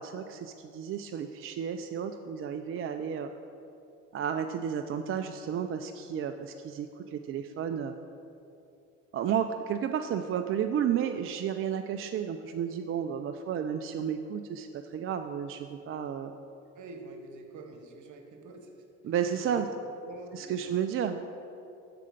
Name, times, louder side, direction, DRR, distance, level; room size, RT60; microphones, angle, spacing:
voice 1, 0.0-3.3 4.1-7.9 9.1-16.3 19.0-19.7 20.3-21.3, right 8 dB, 40° right, 7 dB, 0.4 m, -32 dB
voice 2, 16.7-19.7 20.0-20.8, right 3 dB, 55° right, 4 dB, 1.1 m, -47 dB
6.7 x 4.9 x 6.5 m, 2.7 s
hypercardioid pair, 60°, 35 cm